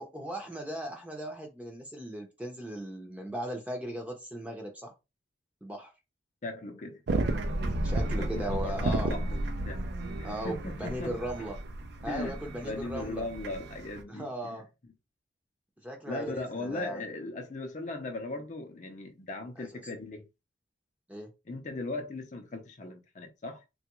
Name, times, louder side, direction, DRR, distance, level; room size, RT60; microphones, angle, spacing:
voice 1, 0.0-4.9 5.6-5.9 7.8-9.1 10.2-11.6 12.0-13.3 14.1-14.6 15.8-17.0 19.6-19.8 21.1-21.3, right 1 dB, 5° right, 0.6 m, -38 dB
voice 2, 6.4-7.0 8.1-9.9 10.2-11.2 12.1-14.6 16.1-20.3 21.5-23.6, left 2 dB, 40° left, 0.5 m, -38 dB
sound 1, 7.1-14.0, right 1 dB, 55° right, 0.4 m, -33 dB
3.3 x 2.3 x 3.0 m
head